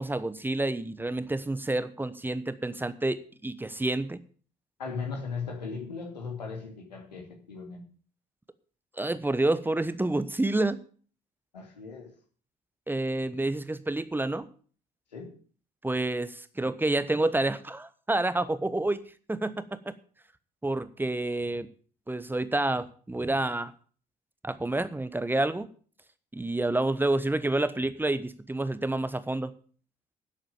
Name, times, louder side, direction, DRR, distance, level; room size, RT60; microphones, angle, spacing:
voice 1, 0.0-4.2 9.0-10.8 12.9-14.5 15.8-19.0 19.3-19.5 19.8-19.9 20.6-21.7 22.1-23.7 24.4-25.7 26.3-29.5, right 2 dB, 10° right, 1.1 m, -28 dB
voice 2, 4.8-7.8 11.5-12.1 15.1-15.3, left 5 dB, 80° left, 2.7 m, -37 dB
11.5 x 8.0 x 7.2 m
figure-of-eight pair, 50°, 21 cm